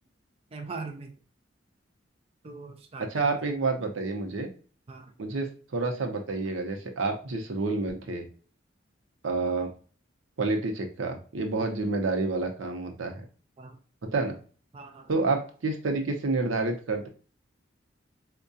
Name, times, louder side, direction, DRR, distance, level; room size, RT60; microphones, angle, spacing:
voice 1, 0.5-1.1 2.4-3.5 4.9-5.1 13.6-13.8 14.7-15.1, right 3 dB, 30° right, 4 dB, 0.4 m, -41 dB
voice 2, 3.1-4.5 5.2-8.2 9.2-9.7 10.4-13.2 14.0-14.4 15.1-17.1, right 3 dB, 85° right, 4 dB, 0.7 m, -29 dB
4.5 x 2.2 x 2.5 m, 0.40 s
head